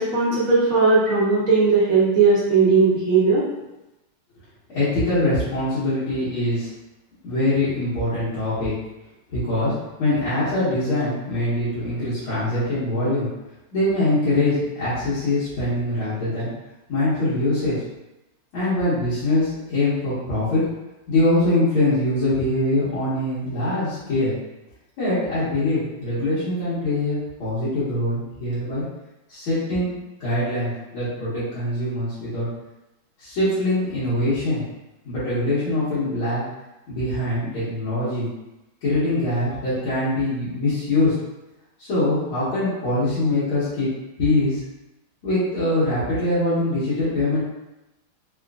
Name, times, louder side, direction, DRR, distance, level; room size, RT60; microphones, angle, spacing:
voice 1, 0.0-3.4, right 4 dB, 60° right, -8 dB, 0.9 m, -18 dB
voice 2, 4.7-6.7 7.2-8.7 9.3-9.7 10.0-13.3 13.7-16.5 16.9-17.8 18.5-20.6 21.1-24.3 25.0-28.8 29.3-29.9 30.2-32.5 33.2-34.6 35.0-36.4 36.9-38.3 38.8-41.1 41.8-43.9 44.2-44.6 45.2-47.4, left 1 dB, 75° left, -15 dB, 2.1 m, -23 dB
4.3 x 2.5 x 2.3 m, 0.97 s
omnidirectional pair, 2.3 m